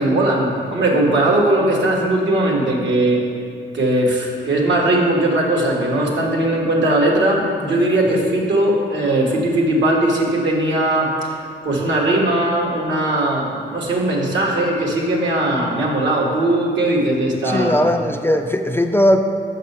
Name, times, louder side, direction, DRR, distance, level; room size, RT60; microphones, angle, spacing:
voice 1, 0.0-3.2 3.7-11.3 11.6-17.9, right 1 dB, 70° right, -2 dB, 1.6 m, -19 dB
voice 2, 17.4-19.2, equal, 10° left, 5 dB, 0.4 m, -18 dB
6.5 x 5.6 x 5.5 m, 2.3 s
cardioid pair, 75°, 19 cm